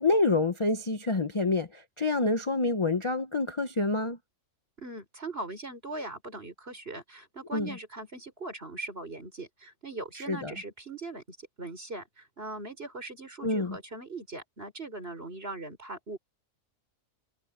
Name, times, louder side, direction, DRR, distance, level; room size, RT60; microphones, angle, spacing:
voice 1, 0.0-4.2 7.5-7.8 10.3-10.5 13.4-13.8, left 3 dB, 25° left, 0.8 m, -27 dB
voice 2, 4.8-16.2, right 2 dB, 45° right, 5.3 m, -40 dB
omnidirectional pair, 1.4 m